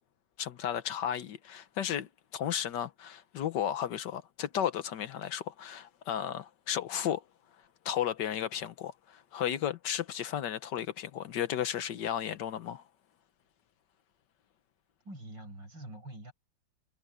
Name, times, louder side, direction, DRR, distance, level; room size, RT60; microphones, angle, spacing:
voice 1, 0.4-7.2 7.8-12.8, left 10 dB, 70° left, 1.6 m, -34 dB
voice 2, 15.1-16.3, right 1 dB, 80° right, 7.3 m, -45 dB
omnidirectional pair, 2.0 m